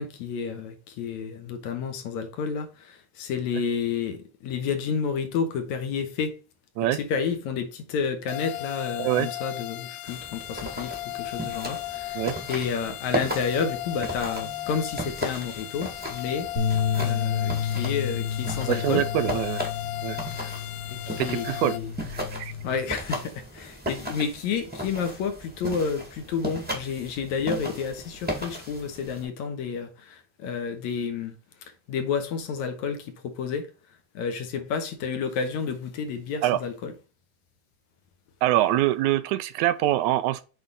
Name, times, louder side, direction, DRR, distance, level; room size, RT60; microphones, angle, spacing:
voice 1, 0.0-6.4 6.9-12.2 12.5-16.5 16.9-19.1 20.4-20.5 20.9-21.9 22.6-31.3 31.9-33.7 34.1-36.9, left 6 dB, 75° left, 2.3 m, -30 dB
sound 1, 8.3-21.8, left 16 dB, 90° left, 1.4 m, -36 dB
sound 2, 10.1-29.3, equal, 5° right, 0.9 m, -36 dB
sound 3, 16.6-22.8, left 7 dB, 30° left, 1.6 m, -30 dB
voice 2, 18.7-19.6 20.0-20.2 21.2-21.7 22.3-22.5 36.4-36.6 38.4-40.4, right 14 dB, 85° right, 1.9 m, -24 dB
8.0 x 3.7 x 3.9 m
omnidirectional pair, 3.5 m